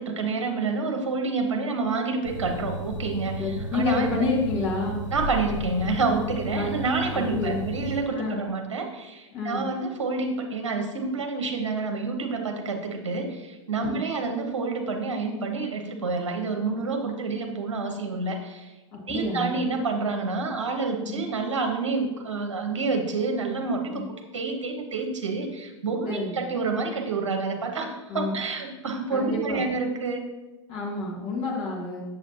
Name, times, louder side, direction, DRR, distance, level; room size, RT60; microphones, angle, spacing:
voice 1, 0.0-4.3 5.1-18.7 19.1-24.0 24.3-30.2, right 4 dB, 70° right, 4 dB, 1.1 m, -28 dB
sound 1, 2.2-8.0, equal, 90° left, 1.7 m, -34 dB
voice 2, 3.4-5.0 6.5-6.7 7.1-7.6 8.1-8.4 9.3-9.7 13.8-14.0 18.9-19.6 21.0-21.2 23.9-24.0 26.0-26.4 28.1-28.4 29.1-29.6 30.7-32.0, left 3 dB, 40° left, -3 dB, 2.0 m, -29 dB
7.3 x 7.0 x 2.8 m, 1.1 s
figure-of-eight pair, 95°, 16 cm